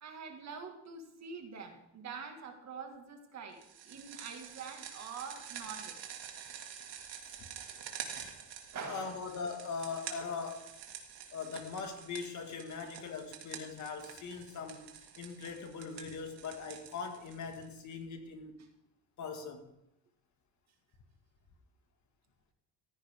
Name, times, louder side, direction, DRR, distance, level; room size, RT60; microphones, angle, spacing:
voice 1, 0.0-6.0 8.7-9.2, right 5 dB, 40° right, 1.9 m, -45 dB
sound 1, 3.6-17.9, right 8 dB, 70° right, 2.3 m, -48 dB
voice 2, 8.8-10.7 11.3-14.9 15.2-18.6 19.2-19.7, left 5 dB, 45° left, 1.8 m, -41 dB
15.5 x 14.5 x 3.6 m
cardioid pair, 170°, 41 cm